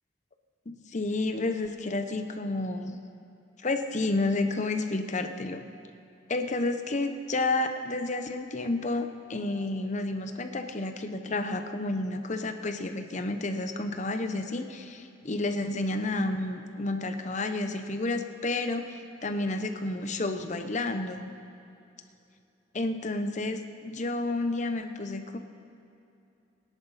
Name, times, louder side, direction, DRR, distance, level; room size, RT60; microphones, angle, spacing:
voice 1, 0.7-2.9 3.6-5.6 6.3-21.3 22.7-25.4, left 2 dB, 40° left, 7 dB, 0.8 m, -30 dB
20.5 x 11.0 x 4.2 m, 2.7 s
head